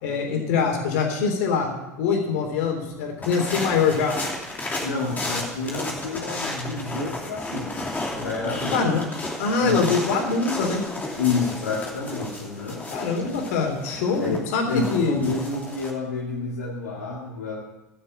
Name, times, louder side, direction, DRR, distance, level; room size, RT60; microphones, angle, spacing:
voice 1, 0.0-1.7 2.0-4.1 8.7-9.0 9.4-10.8 12.9-15.2, left 5 dB, 65° left, 2 dB, 3.3 m, -23 dB
sound 1, 3.2-15.9, left 2 dB, 20° left, 2.7 m, -33 dB
voice 2, 4.8-9.0 9.6-9.9 11.2-12.9 14.2-17.6, left 4 dB, 80° left, -4 dB, 2.0 m, -29 dB
13.0 x 6.8 x 7.6 m, 1.0 s
hypercardioid pair, 85°, 9 cm